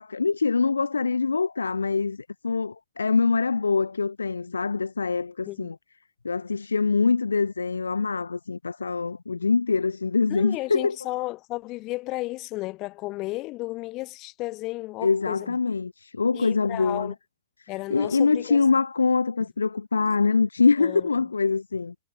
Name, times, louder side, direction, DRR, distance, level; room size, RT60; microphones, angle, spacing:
voice 1, 0.0-5.7 6.2-11.0 15.0-17.1 17.9-21.9, left 4 dB, 75° left, 1.0 m, -24 dB
voice 2, 10.3-15.6 16.3-17.1 17.7-18.6 20.8-21.1, left 20 dB, 35° left, 6.7 m, -33 dB
figure-of-eight pair, 100°, 0 cm